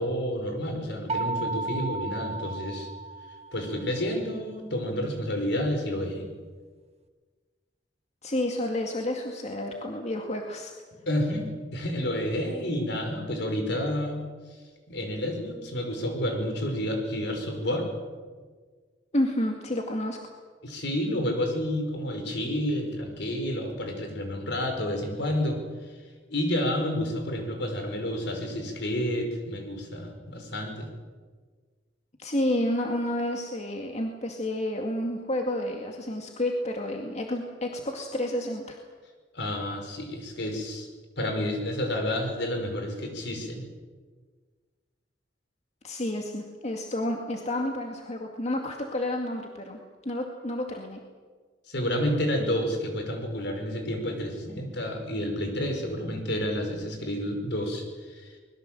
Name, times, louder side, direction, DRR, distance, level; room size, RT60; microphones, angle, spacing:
voice 1, 0.0-2.9 3.5-6.3 11.1-14.3 14.9-17.9 20.6-25.6 26.3-30.9 39.3-40.9 41.2-43.6 45.9-46.0 51.7-58.3, left 1 dB, 65° left, 4 dB, 5.4 m, -30 dB
sound 1, 1.1-3.9, right 3 dB, 35° right, 1.4 m, -33 dB
voice 2, 8.2-10.7 19.1-20.2 32.2-38.8 45.8-51.0, left 1 dB, 35° left, 2 dB, 2.1 m, -30 dB
24.0 x 21.0 x 7.7 m, 1.5 s
head